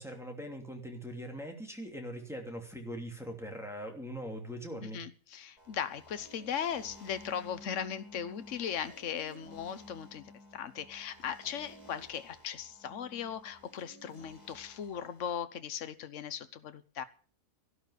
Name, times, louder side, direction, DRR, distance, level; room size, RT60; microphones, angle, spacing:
voice 1, 0.0-5.0, equal, ahead, 1 dB, 2.8 m, -41 dB
voice 2, 4.8-10.2 10.5-17.0, left 8 dB, 60° left, 11 dB, 1.3 m, -38 dB
sound 1, 5.6-15.4, right 2 dB, 30° left, 4.7 m, -57 dB
sound 2, 6.7-8.7 9.4-12.0 12.6-14.9, left 3 dB, 60° right, 6.4 m, -56 dB
13.5 x 11.5 x 6.5 m, 0.42 s
omnidirectional pair, 1.5 m